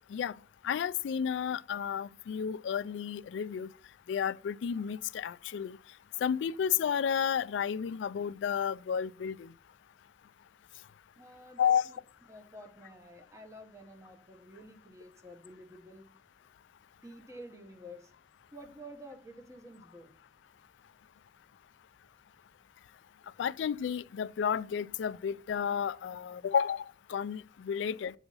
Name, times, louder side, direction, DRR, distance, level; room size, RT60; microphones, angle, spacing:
voice 1, 0.6-3.7 4.1-5.8 6.2-9.4 11.6-11.8 23.4-26.8 27.1-28.1, left 7 dB, 90° left, 0.3 m, -31 dB
voice 2, 11.2-12.0 12.3-16.1 17.0-18.1 18.5-20.1 27.7-27.8, equal, 15° right, 0.9 m, -50 dB
7.9 x 4.1 x 5.3 m
head